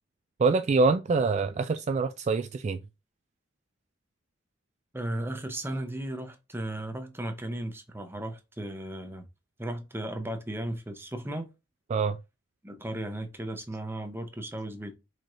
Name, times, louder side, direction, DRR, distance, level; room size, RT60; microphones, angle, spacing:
voice 1, 0.4-2.8 11.9-12.2, right 4 dB, 35° right, 0.3 m, -25 dB
voice 2, 4.9-9.3 9.6-11.5 12.6-15.0, right 1 dB, 10° right, 0.8 m, -35 dB
4.7 x 4.4 x 2.6 m
head